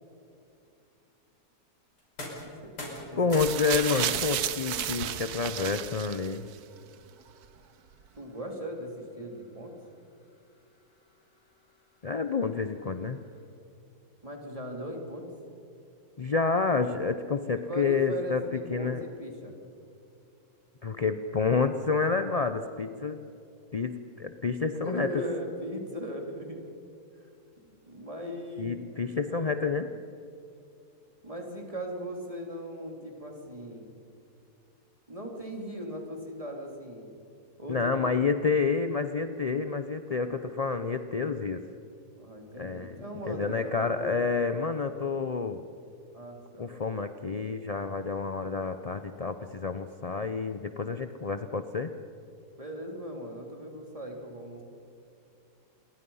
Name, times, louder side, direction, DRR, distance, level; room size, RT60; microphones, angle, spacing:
sound 1, 2.0-13.7, left 1 dB, 90° left, 6.2 m, -48 dB
voice 1, 2.4-3.2 8.1-9.8 14.2-15.3 17.5-19.5 24.7-26.6 27.1-27.3 27.8-29.8 31.2-33.9 35.1-37.1 37.6-38.2 42.2-44.2 46.1-46.7 52.6-54.6, equal, 20° right, 1 dB, 3.3 m, -39 dB
voice 2, 3.2-6.5 12.0-13.2 16.2-19.0 20.8-23.2 23.7-25.1 28.6-29.9 37.7-41.6 42.6-45.6 46.6-51.9, left 4 dB, 45° left, 8 dB, 0.4 m, -29 dB
sound 2, 3.3-6.6 7.4-7.5, right 11 dB, 70° right, 1.3 m, -32 dB
28.0 x 22.5 x 5.6 m, 2.6 s
omnidirectional pair, 1.7 m